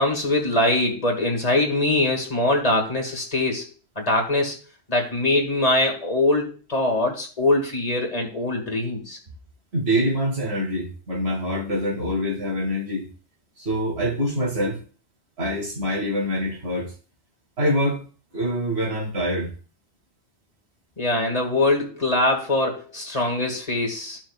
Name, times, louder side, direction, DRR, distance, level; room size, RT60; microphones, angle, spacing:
voice 1, 0.0-3.7 4.0-4.6 4.9-9.2 21.0-24.2, left 2 dB, 35° left, 1 dB, 2.1 m, -22 dB
voice 2, 9.7-13.1 13.6-14.8 15.4-16.9 17.6-18.0 18.3-19.5, equal, 80° right, 0 dB, 2.6 m, -25 dB
14.0 x 6.1 x 2.4 m, 0.37 s
omnidirectional pair, 1.1 m